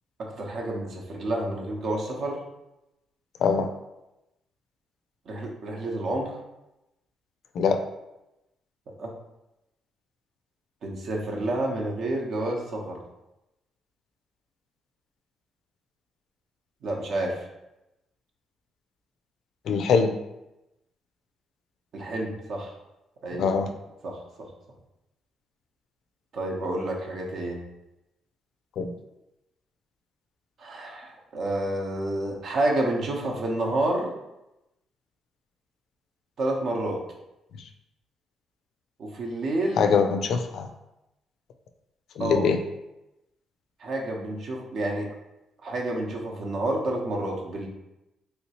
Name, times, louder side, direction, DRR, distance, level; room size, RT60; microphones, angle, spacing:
voice 1, 0.2-2.4 5.3-6.3 9.0-9.1 10.8-13.0 16.8-17.4 21.9-22.7 23.2-23.7 24.0-24.2 26.3-27.6 30.6-34.1 36.4-37.0 39.0-39.9 42.2-42.5 43.8-45.1 45.6-47.7, right 1 dB, 65° right, 0 dB, 0.8 m, -29 dB
voice 2, 19.7-20.2 23.3-23.7 28.8-28.9 39.8-40.7 42.2-42.6, left 6 dB, 70° left, 7 dB, 0.3 m, -23 dB
3.2 x 2.9 x 2.9 m, 0.93 s
cardioid pair, 90°, 0 cm